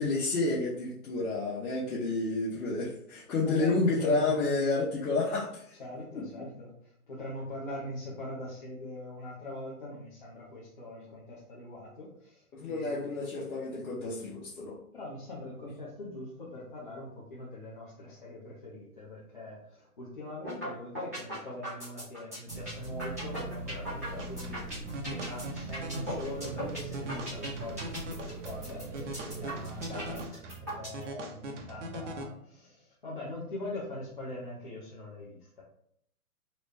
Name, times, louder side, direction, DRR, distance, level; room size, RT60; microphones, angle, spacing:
voice 1, 0.0-5.8 6.1-6.4 12.5-14.8, left 3 dB, 70° left, -6 dB, 1.0 m, -30 dB
voice 2, 3.4-4.6 5.8-6.7 7.1-13.2 14.9-28.9 29.2-35.6, left 1 dB, 35° left, -7 dB, 0.6 m, -42 dB
sound 1, 20.4-20.7 21.0-31.0, right 1 dB, 10° right, 0.6 m, -39 dB
sound 2, 22.5-30.3, right 3 dB, 80° right, 1.2 m, -41 dB
sound 3, 24.2-32.2, right 1 dB, 50° right, 0.6 m, -42 dB
4.0 x 2.2 x 3.2 m, 0.69 s
hypercardioid pair, 175°, 46 cm